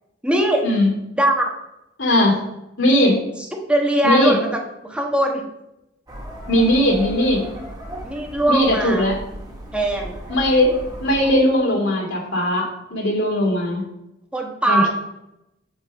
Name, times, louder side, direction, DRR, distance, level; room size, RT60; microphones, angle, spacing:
voice 1, 0.2-0.7 1.2-1.5 3.7-4.6 4.9-5.4 8.0-9.1 9.7-10.2 14.3-14.9, right 1 dB, 5° right, 0 dB, 1.2 m, -20 dB
voice 2, 2.0-2.4 2.8-3.2 4.0-4.4 6.5-7.4 8.5-9.2 10.3-13.8 14.6-14.9, left 1 dB, 70° left, 0 dB, 2.5 m, -19 dB
sound 1, 6.1-11.3, right 1 dB, 20° right, 1.9 m, -36 dB
8.2 x 5.4 x 5.3 m, 0.88 s
head